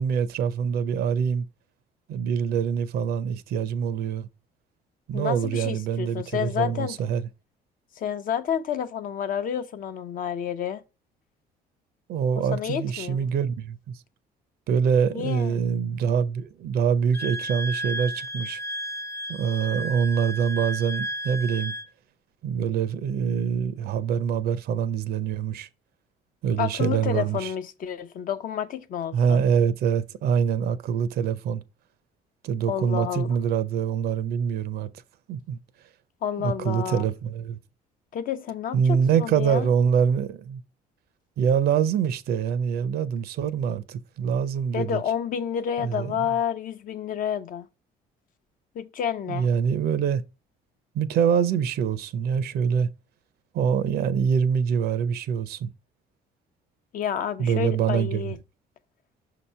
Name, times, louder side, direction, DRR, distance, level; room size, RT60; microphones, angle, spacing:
voice 1, 0.0-1.4 2.1-4.3 5.1-7.2 12.1-14.0 14.7-18.6 19.3-21.7 22.4-25.7 26.4-27.5 29.1-31.6 32.4-34.9 35.3-35.6 36.4-37.6 38.7-40.6 41.4-45.0 45.8-46.3 49.3-50.2 50.9-52.9 53.5-55.7 57.4-58.2, right 7 dB, 65° right, 0.6 m, -25 dB
voice 2, 5.1-7.0 8.0-10.8 12.3-13.3 15.1-15.6 26.6-29.4 32.7-33.4 36.2-37.1 38.1-39.7 44.7-47.7 48.7-49.5 56.9-58.4, left 8 dB, 55° left, 0.7 m, -30 dB
Wind instrument woodwind instrument, 17.1-21.9, equal, 15° left, 0.3 m, -33 dB
6.3 x 2.9 x 5.4 m
cardioid pair, 110°, 17 cm